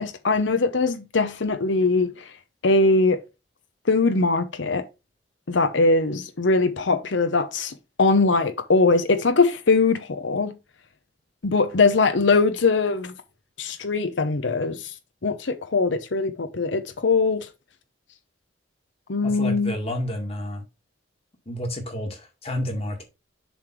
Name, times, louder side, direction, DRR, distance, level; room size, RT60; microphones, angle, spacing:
voice 1, 0.0-2.3 2.6-3.2 3.9-4.8 5.5-10.5 11.4-13.1 13.6-14.9 15.2-17.5 19.1-19.8, left 3 dB, 75° left, 0.8 m, -21 dB
voice 2, 19.2-20.6 21.5-23.0, left 1 dB, 35° left, 2.1 m, -30 dB
7.2 x 3.4 x 6.1 m
head